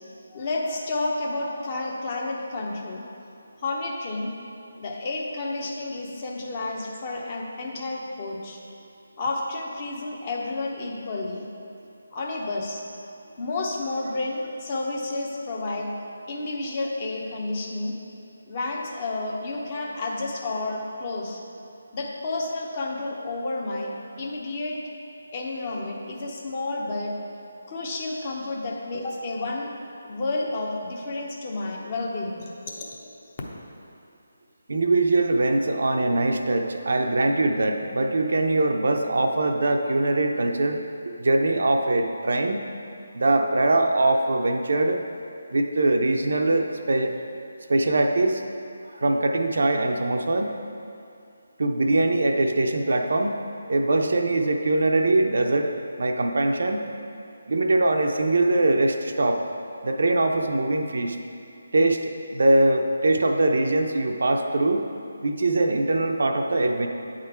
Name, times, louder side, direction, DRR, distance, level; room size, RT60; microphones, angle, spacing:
voice 1, 0.3-3.0 3.6-4.3 4.8-8.6 9.2-11.5 12.1-12.8 13.4-15.9 16.3-17.9 18.5-21.4 21.9-23.9 24.2-24.8 25.3-27.1 27.7-29.7 30.0-32.5 32.8-33.1, left 2 dB, 35° left, -1 dB, 0.8 m, -30 dB
voice 2, 34.7-42.6 43.1-45.0 45.5-47.2 47.7-48.4 48.8-50.5 51.6-53.4 53.7-55.7 56.0-56.9 57.5-59.4 59.8-61.2 61.7-64.9 65.2-66.9, right 2 dB, 65° right, 4 dB, 0.5 m, -22 dB
8.6 x 3.7 x 4.4 m, 2.6 s
figure-of-eight pair, 155°, 0 cm